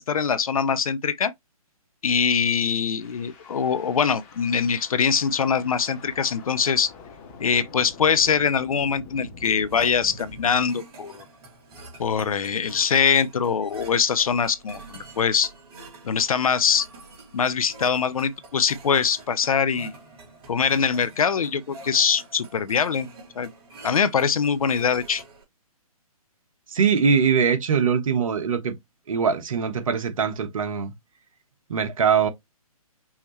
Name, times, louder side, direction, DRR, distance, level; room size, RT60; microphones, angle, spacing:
voice 1, 0.0-1.3 2.0-6.9 7.4-11.2 12.0-15.5 16.0-16.9 17.3-19.9 20.5-23.1 23.4-23.5 23.8-25.2, left 6 dB, 65° left, 0.7 m, -23 dB
sound 1, 3.0-10.7, left 3 dB, 25° left, 1.3 m, -45 dB
sound 2, 9.4-25.4, right 3 dB, 40° right, 2.6 m, -46 dB
voice 2, 26.7-28.8 29.1-30.9 31.7-32.3, right 6 dB, 60° right, 1.3 m, -22 dB
5.7 x 2.9 x 3.0 m
hypercardioid pair, 145°, 19 cm